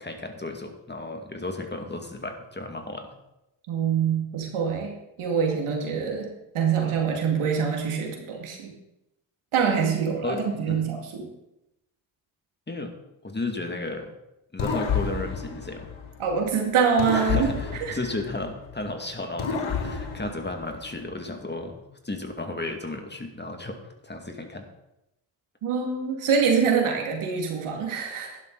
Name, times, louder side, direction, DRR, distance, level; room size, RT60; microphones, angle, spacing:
voice 1, 0.0-3.1 10.2-10.8 12.7-12.9 13.2-14.1 14.5-15.9 17.1-24.7, left 2 dB, 20° left, 4 dB, 2.1 m, -34 dB
voice 2, 3.7-6.3 6.5-8.7 9.5-11.3 16.2-17.5 17.8-18.0 25.6-28.4, right 6 dB, 80° right, 1 dB, 2.4 m, -25 dB
sound 1, 14.6-16.5 17.0-18.9 19.4-21.1, left 6 dB, 75° left, 1.7 m, -30 dB
11.5 x 11.0 x 4.0 m, 0.89 s
supercardioid pair, 50°, 49 cm